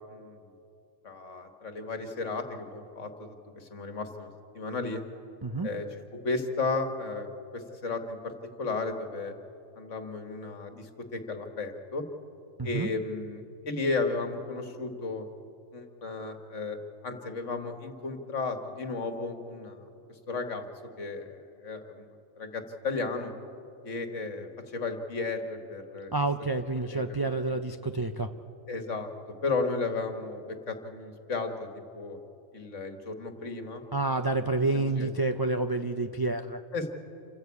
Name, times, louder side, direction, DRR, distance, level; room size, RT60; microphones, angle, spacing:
voice 1, 1.0-4.3 4.5-5.0 5.6-5.9 6.2-8.3 8.6-9.3 9.8-12.0 12.6-15.2 15.7-16.8 17.0-19.9 20.3-20.7 21.0-22.1 22.4-23.3 23.8-26.1 26.9-27.6 28.7-29.1 29.4-31.7 31.9-32.2 32.5-33.8 34.7-35.1 36.7-36.9, left 3 dB, 65° left, 5 dB, 2.0 m, -34 dB
voice 2, 12.6-12.9 26.1-28.3 33.9-36.6, right 2 dB, 35° right, 6 dB, 0.3 m, -29 dB
27.5 x 14.0 x 8.4 m, 2.7 s
omnidirectional pair, 1.4 m